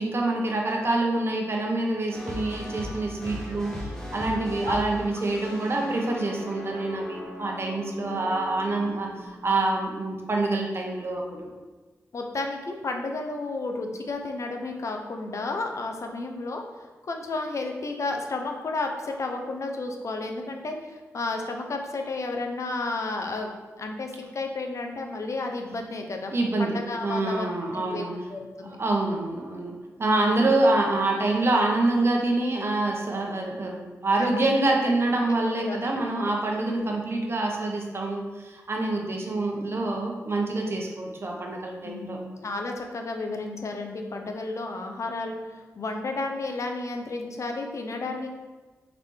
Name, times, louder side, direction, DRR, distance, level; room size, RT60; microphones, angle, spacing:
voice 1, 0.0-3.7 4.1-11.5 26.3-28.1 28.8-42.2, right 2 dB, 45° right, 0 dB, 0.8 m, -26 dB
sound 1, 2.1-10.3, left 1 dB, 10° left, 1.0 m, -39 dB
voice 2, 8.0-8.4 12.1-23.5 23.8-26.3 26.6-28.0 28.3-28.8 30.2-30.5 34.2-34.7 35.3-36.0 39.2-39.3 39.7-39.8 41.8-48.3, left 3 dB, 55° left, 3 dB, 0.6 m, -32 dB
4.0 x 3.2 x 3.1 m, 1.3 s
cardioid pair, 50°, 6 cm